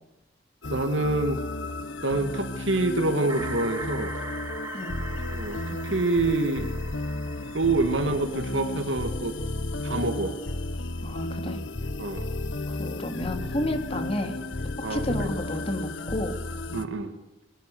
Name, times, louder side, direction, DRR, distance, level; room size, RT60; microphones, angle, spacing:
sound 1, 0.6-16.8, left 2 dB, 80° left, 1.3 m, -33 dB
voice 1, 0.7-1.4 2.0-4.1 5.3-6.7 7.5-9.3 9.8-10.4 12.0-12.2 14.8-15.3 16.7-17.1, right 2 dB, 75° right, 7 dB, 2.1 m, -26 dB
sound 2, 3.3-9.0, right 3 dB, 20° right, 2.3 m, -41 dB
voice 2, 11.0-11.6 12.7-14.4 14.9-16.4, left 1 dB, 30° left, 5 dB, 2.8 m, -31 dB
28.0 x 21.5 x 7.0 m, 0.97 s
head